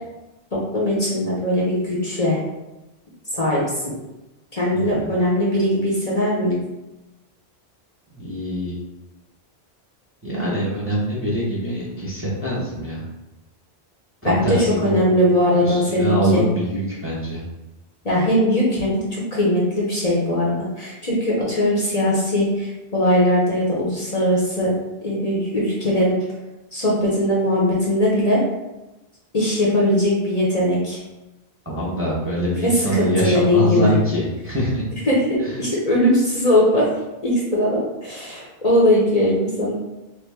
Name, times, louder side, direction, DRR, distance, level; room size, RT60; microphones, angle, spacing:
voice 1, 0.5-2.4 3.3-3.9 4.5-6.6 14.2-16.4 18.0-24.7 25.0-26.2 26.7-28.4 29.3-31.0 32.4-33.9 35.1-36.9 37.2-39.7, left 1 dB, 40° left, -5 dB, 0.7 m, -20 dB
voice 2, 4.7-5.1 8.1-8.8 10.2-13.0 14.2-15.0 15.6-17.4 31.6-34.9 35.4-35.6, right 1 dB, 15° right, -7 dB, 0.7 m, -24 dB
3.0 x 2.5 x 3.4 m, 1.0 s
omnidirectional pair, 1.1 m